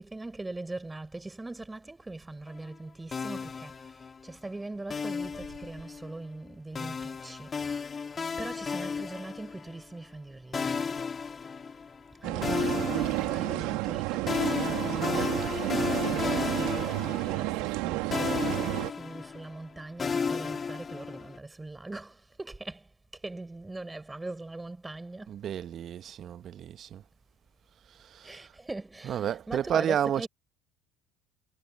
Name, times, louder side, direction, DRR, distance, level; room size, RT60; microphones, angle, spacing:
voice 1, 0.0-8.1 8.4-10.8 12.2-25.4 28.2-30.3, right 2 dB, 15° right, 5.6 m, -41 dB
sound 1, 3.1-4.3 4.9-6.1 6.7-9.8 10.5-12.1 12.4-17.9 18.1-21.4, left 5 dB, 30° left, 4.9 m, -33 dB
sound 2, 12.2-18.9, right 23 dB, 70° right, 3.2 m, -31 dB
voice 2, 25.3-27.0 28.0-28.5 29.0-30.3, right 9 dB, 50° right, 1.3 m, -31 dB
hypercardioid pair, 65°, 0 cm